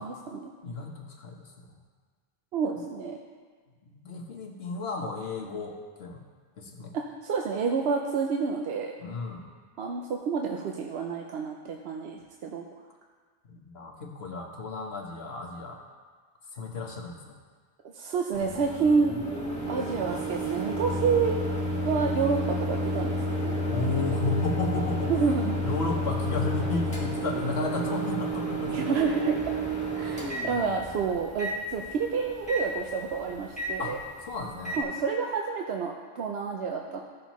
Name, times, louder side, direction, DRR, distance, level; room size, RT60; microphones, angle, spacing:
voice 1, 0.0-0.5 2.5-3.2 6.9-8.9 9.8-12.6 17.9-19.1 19.7-21.4 21.8-23.7 25.1-25.5 28.7-29.5 29.9-34.0 34.8-37.0, right 5 dB, 75° right, 1 dB, 0.9 m, -29 dB
voice 2, 0.6-1.5 3.9-6.2 6.6-6.9 9.0-9.4 13.5-15.8 16.5-17.4 23.6-25.1 25.6-29.1 33.8-34.8, left 3 dB, 70° left, 1 dB, 1.3 m, -33 dB
Microwave oven, 18.3-34.8, equal, 5° left, 1.4 m, -31 dB
15.0 x 6.3 x 3.0 m, 1.5 s
omnidirectional pair, 1.1 m